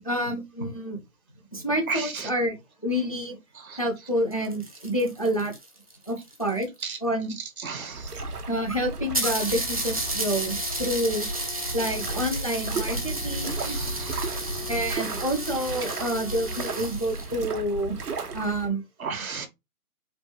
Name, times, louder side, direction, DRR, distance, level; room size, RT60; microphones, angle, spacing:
voice 1, 0.0-1.0 1.5-3.4 3.8-5.5 6.1-6.7 7.0-7.4 8.5-11.3 11.7-13.8 14.7-18.0 18.3-18.8, equal, 25° left, 0.5 m, -28 dB
sound 1, 4.2-6.9 7.8-7.9 8.1-8.2 8.6-8.7 9.1-17.3, right 1 dB, 25° right, 0.6 m, -33 dB
voice 2, 7.6-8.1 13.6-14.3 19.0-19.5, right 4 dB, 65° right, 1.2 m, -34 dB
sound 2, 7.9-18.7, right 3 dB, 85° right, 1.3 m, -34 dB
4.3 x 2.4 x 2.7 m
hypercardioid pair, 170°, 45 cm